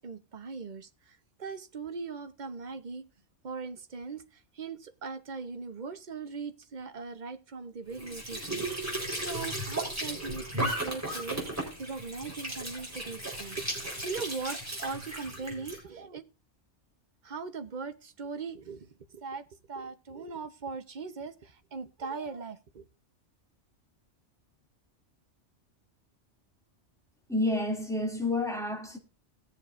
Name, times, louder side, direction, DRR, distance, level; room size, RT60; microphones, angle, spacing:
voice 1, 0.0-3.1 3.4-16.2 17.2-22.9, right 4 dB, 40° right, 1.0 m, -40 dB
Squeak / Sink (filling or washing) / Trickle dribble, 7.9-15.8, right 1 dB, 15° right, 4.1 m, -35 dB
voice 2, 27.3-29.0, left 2 dB, ahead, 2.5 m, -29 dB
18.0 x 7.1 x 2.5 m
omnidirectional pair, 1.2 m